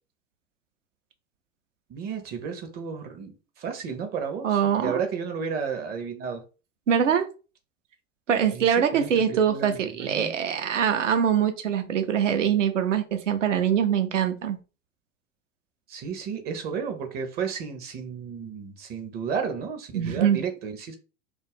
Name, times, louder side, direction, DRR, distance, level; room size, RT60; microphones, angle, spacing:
voice 1, 1.9-6.4 8.5-10.4 15.9-21.0, right 6 dB, 25° right, 0.5 m, -33 dB
voice 2, 4.4-5.0 6.9-7.3 8.3-14.6 19.9-20.4, right 8 dB, 80° right, 0.6 m, -23 dB
2.4 x 2.0 x 3.3 m
figure-of-eight pair, 85°, 37 cm